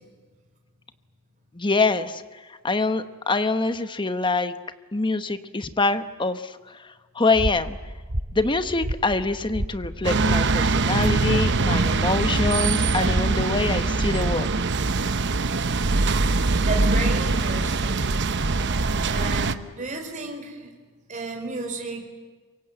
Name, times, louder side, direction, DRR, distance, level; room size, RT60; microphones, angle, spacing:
voice 1, 1.5-4.5 4.9-7.8 8.3-14.5, left 3 dB, 20° left, 10 dB, 1.0 m, -25 dB
sound 1, 7.3-13.7, equal, 75° right, 3.7 m, -32 dB
sound 2, 10.0-19.5, right 3 dB, 55° right, 0.9 m, -22 dB
voice 2, 16.6-18.2 19.0-20.7 21.1-22.1, right 3 dB, 35° right, 3 dB, 4.7 m, -33 dB
27.5 x 24.0 x 8.0 m, 1.4 s
head